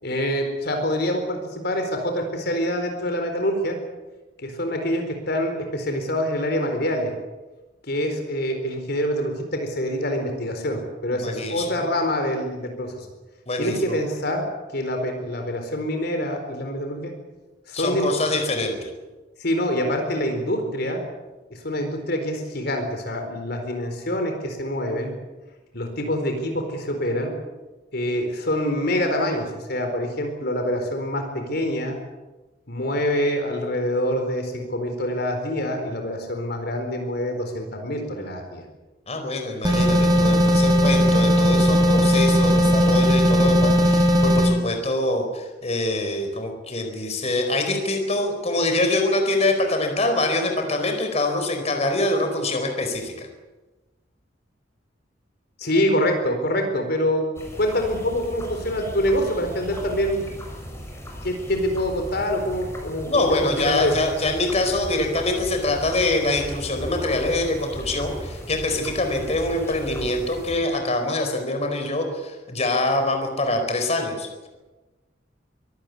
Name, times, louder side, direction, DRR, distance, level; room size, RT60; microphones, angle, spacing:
voice 1, 0.0-3.8 4.4-7.1 7.9-13.1 13.6-14.4 14.7-17.1 17.7-18.1 19.4-21.0 21.5-25.1 25.7-27.3 27.9-32.0 32.7-38.6 55.6-57.3 57.6-60.2 61.2-64.0, equal, 60° left, 4 dB, 4.3 m, -25 dB
voice 2, 11.1-11.8 13.5-14.0 17.7-18.8 39.1-53.3 63.1-74.5, left 2 dB, 35° left, 5 dB, 4.5 m, -24 dB
sound 1, 39.6-44.5, equal, 25° right, 6.2 m, -17 dB
sound 2, 57.4-70.6, equal, 15° left, 6.0 m, -37 dB
24.5 x 18.0 x 8.3 m, 1.2 s
head